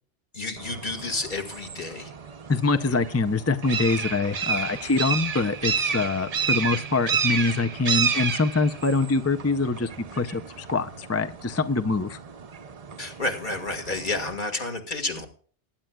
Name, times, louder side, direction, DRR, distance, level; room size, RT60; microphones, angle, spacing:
voice 1, 0.3-2.1 13.0-15.3, left 2 dB, 45° left, 4 dB, 2.1 m, -30 dB
sound 1, 0.6-14.4, right 6 dB, 40° right, 0.7 m, -31 dB
voice 2, 2.5-12.2, left 3 dB, 25° left, 9 dB, 0.3 m, -24 dB
20.0 x 10.0 x 2.3 m, 0.43 s
omnidirectional pair, 1.2 m